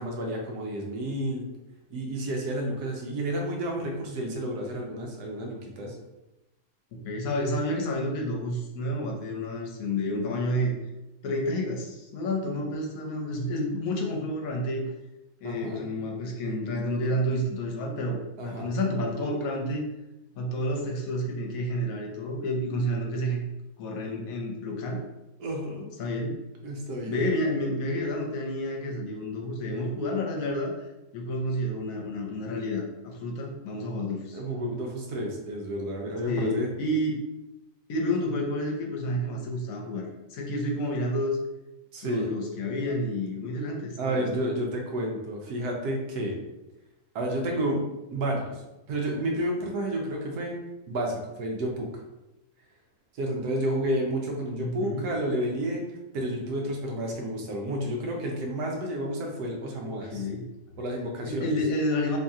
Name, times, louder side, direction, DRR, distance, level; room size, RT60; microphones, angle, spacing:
voice 1, 0.0-1.5 1.9-6.0 15.4-15.9 18.4-18.7 25.4-25.9 26.6-27.2 34.3-36.7 41.9-42.3 44.0-46.4 47.1-47.8 48.1-48.6 48.9-50.6 50.9-51.9 53.2-55.8 56.1-60.3 60.8-61.6, right 1 dB, 75° right, 0 dB, 1.3 m, -31 dB
voice 2, 7.0-10.7 11.2-14.9 15.4-19.9 20.3-23.4 23.8-25.0 26.0-26.4 27.1-30.7 31.1-34.7 36.3-37.2 37.9-41.4 42.0-44.4 54.6-55.0 60.0-60.4 61.2-62.2, left 1 dB, 65° left, 0 dB, 1.1 m, -30 dB
3.1 x 2.8 x 3.6 m, 0.97 s
omnidirectional pair, 1.7 m